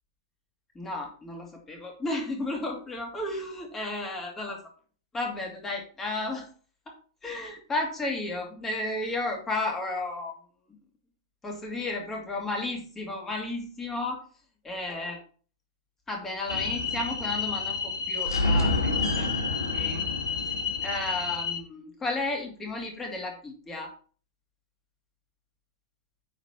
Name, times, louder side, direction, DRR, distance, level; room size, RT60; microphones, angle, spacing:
voice 1, 0.7-4.6 5.1-6.5 7.2-10.3 11.4-14.2 14.7-15.2 16.1-17.7 18.1-19.3 19.7-20.1 20.8-23.9, left 2 dB, 15° left, 1 dB, 2.4 m, -33 dB
sound 1, 16.5-21.6, left 4 dB, 80° left, 1.4 m, -28 dB
9.1 x 4.2 x 4.4 m, 0.42 s
figure-of-eight pair, 100°, 2 cm